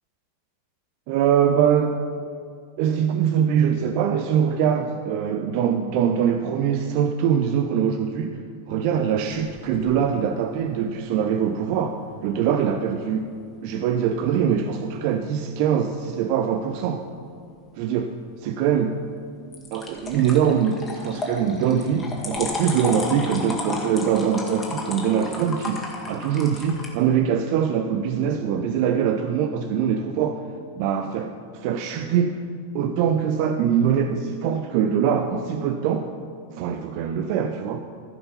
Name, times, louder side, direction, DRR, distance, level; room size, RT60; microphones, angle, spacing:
voice 1, 1.1-2.0 2.8-8.4 8.7-13.3 13.6-17.0 17.8-18.1 18.4-19.0 19.7-30.4 30.8-32.4 32.7-36.1 36.5-37.8, right 8 dB, 45° right, 7 dB, 0.5 m, -23 dB
sound 1, 9.3-9.9 19.5-26.9, left 3 dB, 20° left, 1.8 m, -33 dB
15.0 x 5.5 x 5.6 m, 2.4 s
figure-of-eight pair, 90°, 0 cm